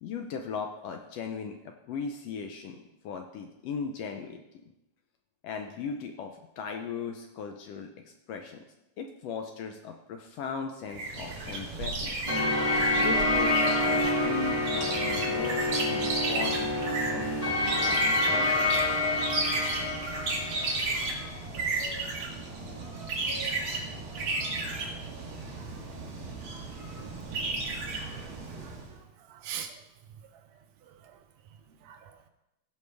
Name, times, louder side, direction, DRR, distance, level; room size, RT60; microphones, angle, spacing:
voice 1, 0.0-4.4 5.4-7.9 8.3-8.6 9.0-12.1 13.0-18.7, left 6 dB, 75° left, 5 dB, 1.5 m, -38 dB
sound 1, 10.9-28.9, right 3 dB, 50° right, 2.0 m, -34 dB
sound 2, 12.3-21.1, left 2 dB, 15° left, 1.6 m, -27 dB
voice 2, 27.6-28.2 28.6-28.7 29.3-29.7 31.8-32.3, right 9 dB, 75° right, 6 dB, 1.8 m, -42 dB
16.0 x 5.3 x 3.4 m, 0.92 s
omnidirectional pair, 3.3 m